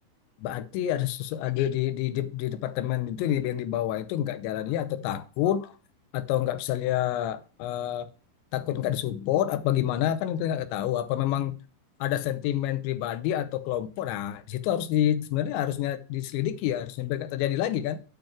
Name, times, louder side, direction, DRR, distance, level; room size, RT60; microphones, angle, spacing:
voice 1, 0.4-5.7 6.1-8.1 8.5-11.6 12.0-18.0, left 12 dB, 85° left, 3.0 m, -28 dB
9.1 x 5.2 x 6.1 m
omnidirectional pair, 5.3 m